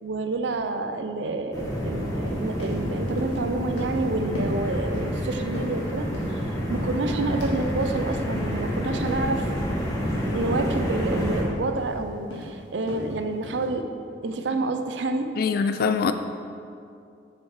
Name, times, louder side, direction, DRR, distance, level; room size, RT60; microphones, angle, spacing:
voice 1, 0.0-9.5 10.2-13.9 14.2-15.3, right 2 dB, 75° right, 7 dB, 0.6 m, -29 dB
sound 1, 1.5-11.4, equal, 20° left, 1.6 m, -29 dB
sound 2, 2.3-2.4 2.6-2.8 3.2-3.4 3.8-4.0 4.3-4.6 4.9-5.2 5.5-6.4 6.7-7.5 7.8-8.0 8.4-8.6 8.9-9.1 9.5-9.7 10.0-10.2 10.5-10.8 11.2-11.4 11.7-12.0 12.3-12.5 12.9-13.1 13.4-13.6, equal, 85° left, 1.8 m, -35 dB
voice 2, 15.4-16.1, left 5 dB, 55° left, 9 dB, 0.3 m, -23 dB
7.0 x 7.0 x 4.8 m, 2.5 s
head